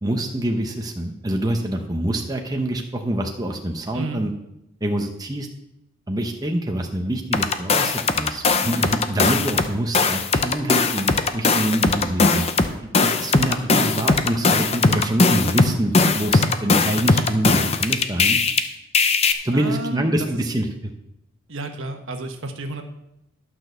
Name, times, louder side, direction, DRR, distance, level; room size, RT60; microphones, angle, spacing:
voice 1, 0.0-4.3 4.8-5.5 6.1-12.5 13.0-18.4 19.4-20.9, right 1 dB, 20° right, 3 dB, 0.8 m, -26 dB
sound 1, 7.3-9.7 9.9-18.6 18.9-19.3, left 4 dB, 30° left, 0.6 m, -19 dB
voice 2, 19.5-20.3 21.5-22.8, right 2 dB, 65° right, 5 dB, 1.2 m, -31 dB
12.0 x 6.1 x 6.6 m, 0.85 s
head